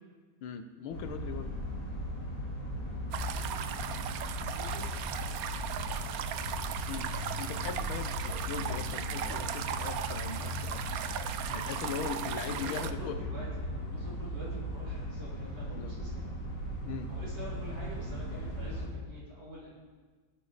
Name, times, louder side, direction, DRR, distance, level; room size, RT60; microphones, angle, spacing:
voice 1, 0.4-1.5 6.9-7.1 7.4-10.8 11.5-13.2 15.7-15.9 16.8-17.1, left 7 dB, 80° left, 8 dB, 1.6 m, -40 dB
sound 1, 0.9-18.9, equal, 55° left, 2.9 m, -38 dB
sound 2, 3.1-12.9, right 9 dB, 85° right, 0.7 m, -37 dB
voice 2, 3.3-3.7 4.3-5.4 12.5-16.4 17.1-19.7, left 1 dB, 55° right, -7 dB, 5.8 m, -46 dB
19.5 x 8.6 x 4.0 m, 1.4 s
omnidirectional pair, 2.3 m